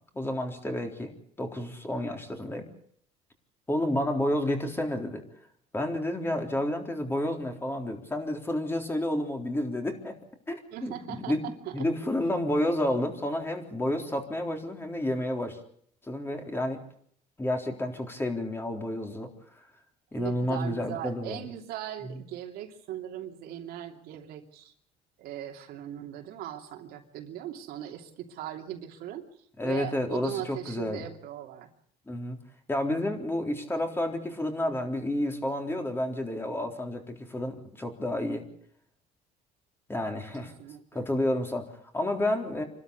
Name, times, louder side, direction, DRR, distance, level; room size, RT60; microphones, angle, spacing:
voice 1, 0.1-1.1 1.4-2.7 3.7-5.2 5.7-10.2 10.5-11.4 11.7-15.6 16.0-16.8 17.4-19.3 20.1-21.4 22.0-22.2 29.6-31.1 32.1-32.4 32.7-38.4 39.9-40.5 40.9-42.6, left 1 dB, 15° left, 3 dB, 3.7 m, -30 dB
voice 2, 10.7-11.9 20.1-24.7 25.2-29.3 29.6-31.7 40.6-41.1, right 11 dB, 70° right, 3 dB, 2.9 m, -39 dB
27.0 x 13.0 x 8.3 m, 0.64 s
cardioid pair, 115°, 16 cm